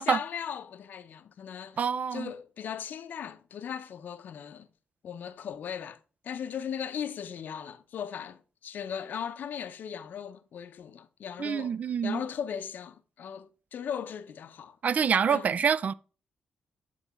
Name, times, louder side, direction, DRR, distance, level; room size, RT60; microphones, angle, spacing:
voice 1, 0.0-1.8 2.1-4.7 5.0-14.8 15.3-15.5, left 8 dB, 70° left, 0.6 m, -38 dB
voice 2, 1.8-2.3 11.4-12.2 14.8-15.9, right 7 dB, 50° right, 0.3 m, -26 dB
9.1 x 3.9 x 3.5 m
cardioid pair, 100°, 3 cm